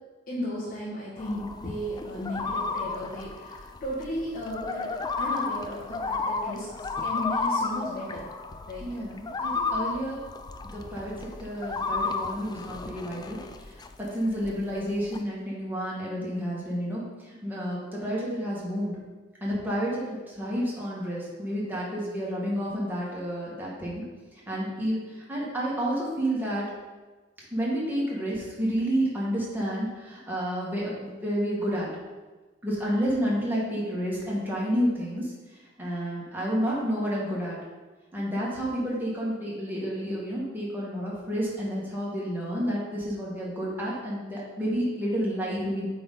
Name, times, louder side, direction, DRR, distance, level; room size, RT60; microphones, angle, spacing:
voice 1, 0.3-8.3 8.7-8.9, equal, 50° left, -8 dB, 1.7 m, -35 dB
sound 1, 1.2-14.0 14.3-15.2, left 3 dB, 20° left, 0.3 m, -33 dB
voice 2, 8.8-10.2 10.6-13.4 14.1-17.0 17.4-19.0 19.4-24.0 24.5-26.6 27.5-31.9 32.6-35.3 35.8-37.6 38.1-45.9, equal, 10° right, -6 dB, 1.8 m, -30 dB
8.5 x 3.9 x 3.8 m, 1.2 s
head